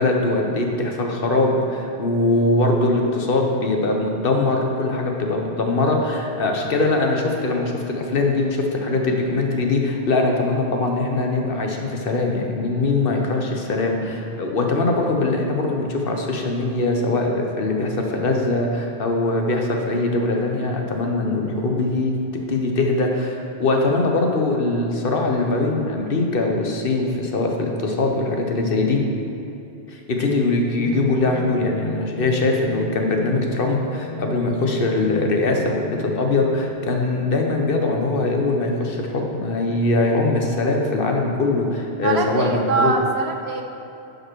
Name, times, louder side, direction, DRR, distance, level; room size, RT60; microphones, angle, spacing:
voice 1, 0.0-22.2 22.5-29.0 29.9-42.9, left 2 dB, 65° left, 1 dB, 1.2 m, -22 dB
sound 1, 30.7-36.7, right 1 dB, 35° left, 1.0 m, -34 dB
voice 2, 42.0-43.6, right 4 dB, 90° right, 3 dB, 1.1 m, -23 dB
10.5 x 5.3 x 4.6 m, 2.9 s
omnidirectional pair, 1.0 m